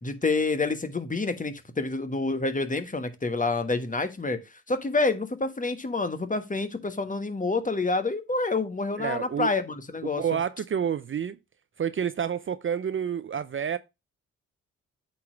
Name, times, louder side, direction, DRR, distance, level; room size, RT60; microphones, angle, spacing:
voice 1, 0.0-4.4 4.7-10.2, left 3 dB, 25° left, 1.3 m, -28 dB
voice 2, 9.0-9.5 10.0-11.4 11.8-13.8, right 8 dB, 40° right, 0.6 m, -29 dB
8.4 x 3.0 x 6.0 m
hypercardioid pair, 45°, 33 cm